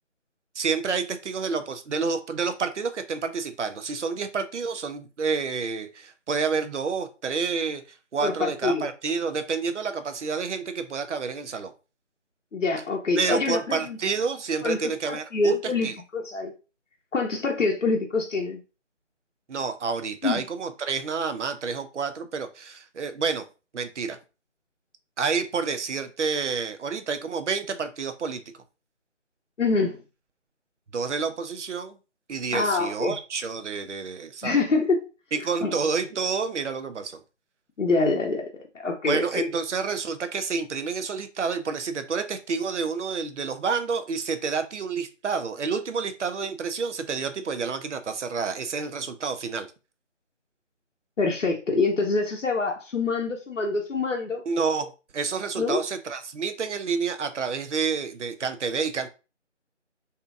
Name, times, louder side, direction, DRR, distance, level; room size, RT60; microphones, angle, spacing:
voice 1, 0.5-11.7 13.2-16.0 19.5-23.4 23.7-24.2 25.2-28.4 30.9-32.0 32.3-34.6 35.3-37.2 39.1-49.7 54.5-59.1, right 5 dB, 70° right, 9 dB, 0.5 m, -29 dB
voice 2, 8.2-8.9 12.5-14.0 14.6-14.9 15.3-16.5 17.1-18.6 20.2-20.4 29.6-30.0 32.5-33.2 34.4-35.0 35.6-35.7 37.8-38.5 38.8-39.5 51.2-54.4 55.6-55.8, left 3 dB, 85° left, 1 dB, 0.6 m, -25 dB
2.7 x 2.5 x 2.4 m, 0.31 s
figure-of-eight pair, 160°, 37 cm